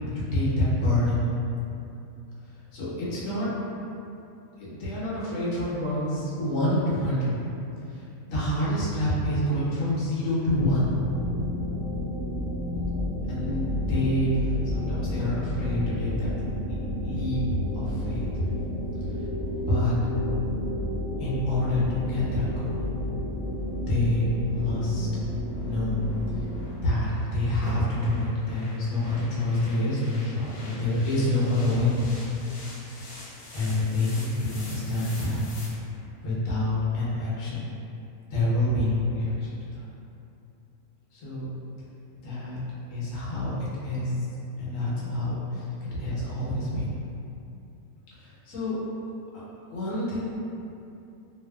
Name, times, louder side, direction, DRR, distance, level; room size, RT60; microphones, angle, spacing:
voice 1, 0.1-1.2 2.7-3.5 4.6-7.4 7.9-8.0 8.3-10.9 13.3-16.3 17.0-17.4 17.7-18.4 19.7-19.9 21.2-22.8 23.9-25.1 25.6-26.0 26.4-26.5 26.8-32.0 33.5-35.4 36.2-37.7 38.3-39.5 41.1-41.5 42.2-42.6 42.9-44.1 44.6-47.0 48.2-48.8 49.3-49.4 49.7-50.2, left 1 dB, 65° left, -9 dB, 1.0 m, -27 dB
sound 1, 10.4-26.6, left 1 dB, 35° right, 0.8 m, -31 dB
sound 2, 21.1-35.7, left 1 dB, 90° left, 1.1 m, -47 dB
sound 3, 26.2-26.8 27.4-28.2 29.0-29.2 29.4-31.7, right 1 dB, 55° right, 0.4 m, -46 dB
2.6 x 2.3 x 2.2 m, 2.7 s
omnidirectional pair, 1.6 m